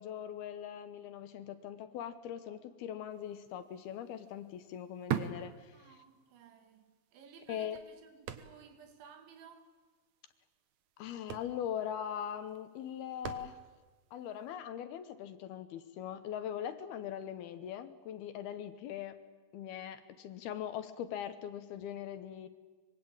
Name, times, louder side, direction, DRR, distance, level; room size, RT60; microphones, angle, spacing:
voice 1, 0.0-6.0 7.5-7.8 11.0-13.6 14.1-19.2 19.5-22.5, left 9 dB, 70° left, 2.7 m, -41 dB
sound 1, 3.3-3.4 3.7-6.3 6.7-6.8 7.4-8.9 9.2-9.3 9.5-9.8 10.7-10.8 11.1-13.9 14.5-14.6, right 9 dB, 70° right, 1.8 m, -41 dB
voice 2, 5.7-9.7, right 6 dB, 85° right, 4.5 m, -56 dB
25.0 x 24.0 x 8.8 m
omnidirectional pair, 5.1 m